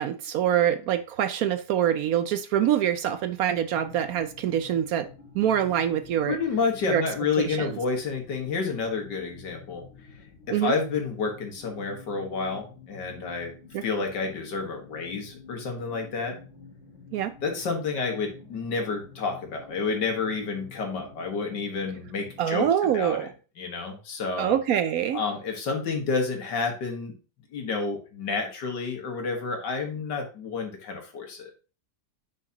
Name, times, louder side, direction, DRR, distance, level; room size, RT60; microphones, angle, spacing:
voice 1, 0.0-5.1 5.3-6.4 6.9-7.0 7.4-7.8 10.5-10.7 13.7-13.8 17.1-17.3 22.4-23.3 24.4-25.2, right 10 dB, 70° right, 10 dB, 0.9 m, -25 dB
sound 1, 3.7-22.5, left 5 dB, 40° left, 1.5 m, -49 dB
voice 2, 6.3-9.8 10.5-13.5 13.8-16.4 17.4-23.3 23.6-24.6 25.1-27.1 27.5-31.5, left 4 dB, 85° left, 3 dB, 2.1 m, -30 dB
9.6 x 5.0 x 2.8 m, 0.35 s
omnidirectional pair, 1.8 m